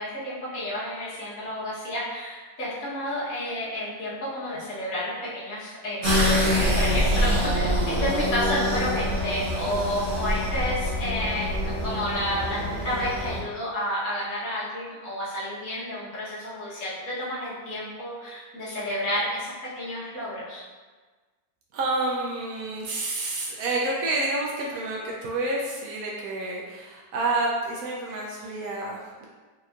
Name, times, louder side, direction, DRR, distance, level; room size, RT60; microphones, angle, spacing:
voice 1, 0.0-19.5 19.7-20.6, equal, 55° left, -8 dB, 1.6 m, -31 dB
sound 1, 6.0-13.4, equal, 50° right, 1.4 m, -25 dB
voice 2, 21.7-29.3, right 2 dB, 70° right, -3 dB, 0.9 m, -29 dB
4.8 x 3.0 x 2.4 m, 1.4 s
omnidirectional pair, 1.9 m